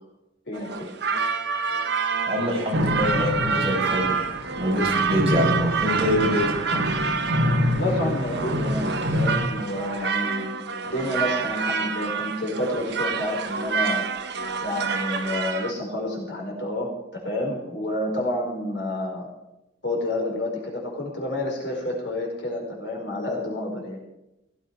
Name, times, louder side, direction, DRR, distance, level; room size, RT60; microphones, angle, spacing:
voice 1, 0.5-0.9 6.7-7.0 7.4-10.5 10.8-14.0 14.6-19.3 19.8-24.0, left 1 dB, 75° left, 0 dB, 4.7 m, -29 dB
sound 1, 0.5-15.7, right 5 dB, 65° right, 1.1 m, -28 dB
voice 2, 2.3-4.3 4.6-6.8, equal, 35° right, -2 dB, 5.3 m, -25 dB
sound 2, 2.7-9.5, left 1 dB, 80° right, 1.6 m, -27 dB
17.0 x 13.5 x 4.7 m, 0.92 s
head